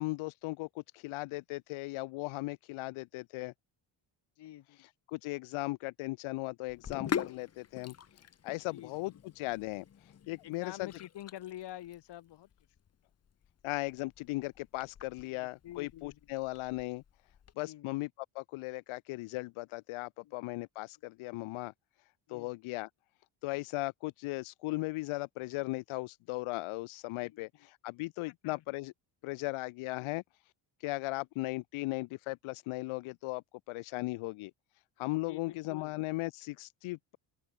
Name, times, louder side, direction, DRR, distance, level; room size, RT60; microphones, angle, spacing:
voice 1, 0.0-3.5 4.8-8.0 8.4-10.9 13.6-17.0 17.6-21.7 22.3-22.9 23.4-28.9 29.2-30.2 30.8-34.5 35.0-37.2, left 22 dB, 90° left, 0.6 m, -37 dB
voice 2, 4.4-4.8 8.7-8.9 10.4-12.5 15.3-16.2 17.6-17.9 22.3-22.5 27.2-27.4 28.4-28.6 30.0-30.2 35.3-35.9, left 13 dB, 60° left, 1.7 m, -47 dB
Sink (filling or washing), 6.7-17.5, left 8 dB, 30° left, 1.3 m, -44 dB
cardioid pair, 160°, 48 cm